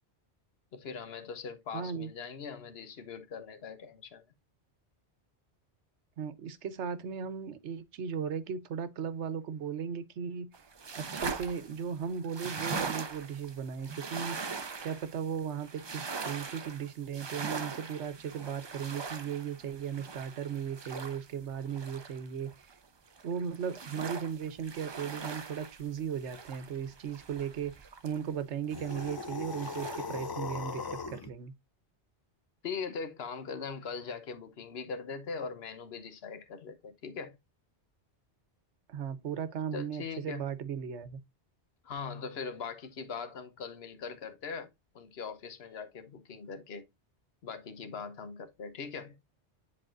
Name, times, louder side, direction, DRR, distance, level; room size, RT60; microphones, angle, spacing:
voice 1, 0.7-4.2 32.6-37.4 39.7-40.5 41.8-44.7 44.9-46.8 47.4-49.2, left 5 dB, 65° left, 1.2 m, -41 dB
voice 2, 1.7-2.1 6.2-10.5 10.9-14.5 14.8-22.7 23.2-31.5 38.9-41.2, right 7 dB, 85° right, 1.1 m, -37 dB
sound 1, 10.5-22.7 23.1-28.4 28.7-30.3, right 5 dB, 35° right, 0.5 m, -41 dB
sound 2, 28.7-31.3, left 4 dB, 35° left, 0.4 m, -39 dB
10.0 x 4.0 x 2.5 m
omnidirectional pair, 1.1 m